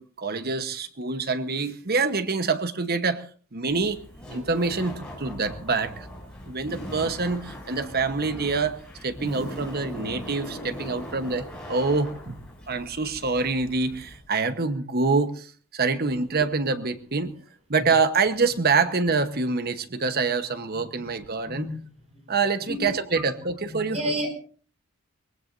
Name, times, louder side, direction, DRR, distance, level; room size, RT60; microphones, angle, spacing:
voice 1, 0.0-3.3 3.5-4.0 4.3-6.1 6.5-12.4 12.7-17.3 17.7-21.7 22.3-24.0, right 4 dB, 45° right, 10 dB, 1.1 m, -26 dB
Laughter, 3.7-14.2, equal, 5° left, 7.2 m, -40 dB
voice 2, 21.4-21.8 22.1-22.2 22.7-22.8 23.7-24.3, equal, 30° right, 3 dB, 6.6 m, -30 dB
23.5 x 21.0 x 2.7 m, 0.41 s
head